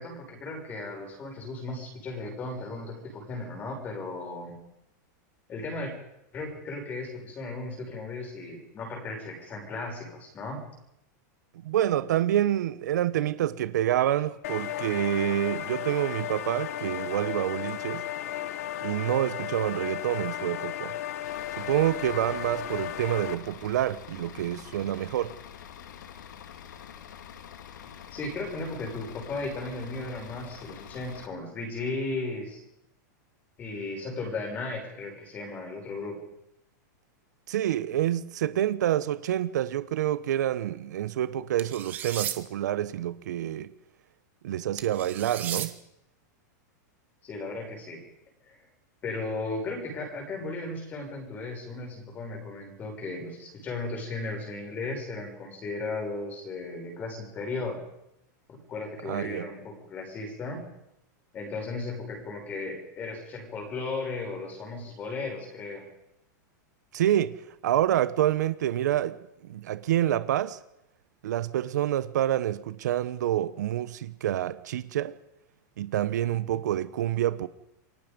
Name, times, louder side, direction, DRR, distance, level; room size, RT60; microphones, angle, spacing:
voice 1, 0.0-4.6 5.5-5.9 6.3-10.6 28.1-32.6 33.6-36.2 47.2-48.0 48.5-48.6 49.0-57.8 58.5-60.7 61.3-65.9 76.4-76.6, left 3 dB, 15° left, 6.1 m, -36 dB
voice 2, 11.6-18.0 18.8-20.9 21.6-25.3 37.5-43.7 44.4-45.7 59.0-59.5 66.9-67.4 67.6-69.2 69.4-70.6 71.2-75.2 75.8-77.5, right 12 dB, 65° right, 1.1 m, -27 dB
sound 1, 14.4-23.4, left 12 dB, 55° left, 1.2 m, -34 dB
Bus / Idling, 21.2-31.3, left 9 dB, 75° left, 2.5 m, -46 dB
sound 2, 41.6-42.4 44.8-45.7, right 10 dB, 20° right, 1.2 m, -34 dB
28.0 x 23.5 x 5.3 m
supercardioid pair, 180°, 10 cm